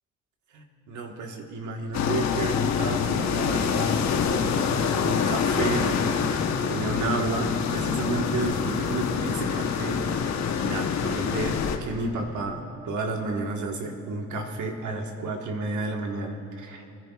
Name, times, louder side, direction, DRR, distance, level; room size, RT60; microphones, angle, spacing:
voice 1, 0.5-4.7 5.0-6.0 6.6-10.0 10.6-16.8, right 3 dB, 75° right, 2 dB, 1.5 m, -31 dB
sound 1, 1.9-11.8, left 6 dB, 65° left, 1.1 m, -26 dB
27.0 x 10.5 x 2.4 m, 2.7 s
cardioid pair, 90°, 30 cm